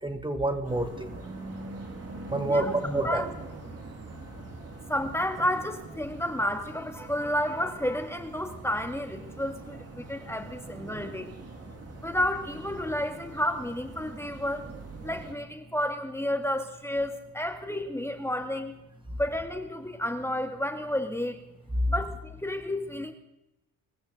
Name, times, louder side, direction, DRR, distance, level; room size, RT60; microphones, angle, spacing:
voice 1, 0.0-1.1 2.3-3.2, right 2 dB, 15° right, 7 dB, 2.2 m, -28 dB
sound 1, 0.6-15.3, right 2 dB, 45° right, 5.1 m, -43 dB
voice 2, 2.5-3.3 4.9-11.3 12.0-14.7 15.0-18.7 19.2-21.4 21.9-23.1, left 1 dB, 5° left, 5 dB, 2.0 m, -31 dB
25.0 x 14.0 x 3.9 m, 0.93 s
cardioid pair, 70°, 34 cm